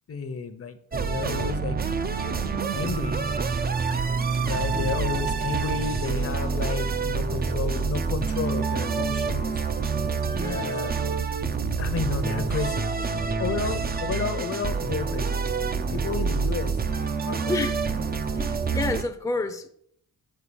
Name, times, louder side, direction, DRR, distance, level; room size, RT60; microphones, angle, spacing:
voice 1, 0.1-0.8 1.0-1.8 2.2-3.2 4.3-9.6 10.4-10.9 11.8-15.5 15.9-16.7 17.3-17.6, left 4 dB, 40° left, 0.8 m, -32 dB
sound 1, 0.9-19.0, right 5 dB, 25° right, 0.6 m, -27 dB
voice 2, 10.3-10.8 17.5-17.9 18.3-19.7, left 3 dB, 10° left, 0.6 m, -30 dB
8.8 x 3.8 x 6.9 m
wide cardioid pair, 140°, 35 cm